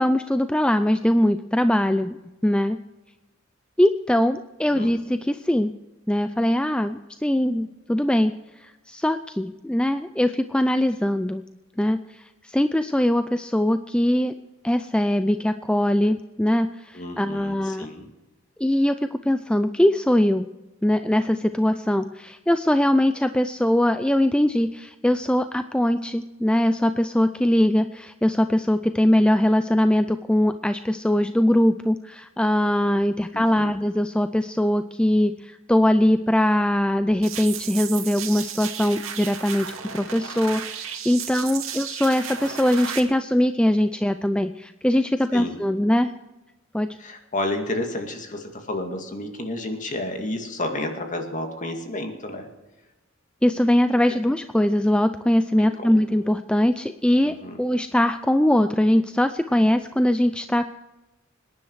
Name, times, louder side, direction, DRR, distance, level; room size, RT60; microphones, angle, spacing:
voice 1, 0.0-2.2 2.4-2.8 3.8-5.7 6.1-8.3 8.6-11.4 11.8-14.3 14.6-17.9 18.6-19.0 19.2-20.5 20.8-46.1 46.7-47.0 53.4-60.7, left 1 dB, 5° left, 10 dB, 0.4 m, -21 dB
voice 2, 16.9-18.1 33.3-33.7 45.3-45.6 47.0-52.5 55.5-55.9 57.2-57.6, left 1 dB, 40° left, 4 dB, 2.3 m, -31 dB
sound 1, 37.2-43.0, right 8 dB, 75° right, 2.2 m, -34 dB
25.5 x 10.5 x 4.8 m, 1.1 s
head